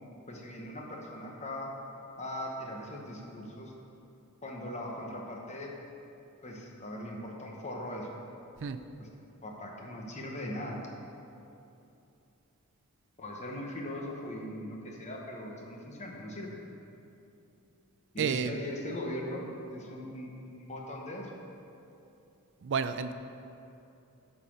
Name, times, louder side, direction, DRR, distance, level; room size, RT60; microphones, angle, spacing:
voice 1, 0.3-1.7 2.2-3.7 4.4-5.7 6.4-8.2 9.0-9.1 9.4-10.8 13.2-16.6 18.1-21.3, left 1 dB, 30° left, -1 dB, 1.0 m, -40 dB
voice 2, 18.2-18.6 22.6-23.1, right 6 dB, 55° right, 10 dB, 0.4 m, -31 dB
9.1 x 4.2 x 6.2 m, 2.8 s
head